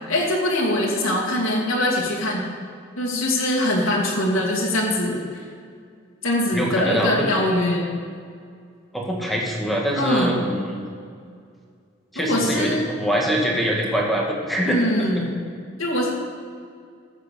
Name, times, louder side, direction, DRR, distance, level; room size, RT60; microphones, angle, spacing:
voice 1, 0.1-2.4 3.0-5.4 6.2-7.9 9.9-10.4 12.2-12.9 14.6-15.4 15.8-16.1, left 1 dB, 90° left, -4 dB, 2.4 m, -22 dB
voice 2, 6.5-7.3 8.9-10.9 12.1-15.2, equal, ahead, -2 dB, 1.6 m, -24 dB
15.5 x 6.7 x 6.8 m, 2.2 s
head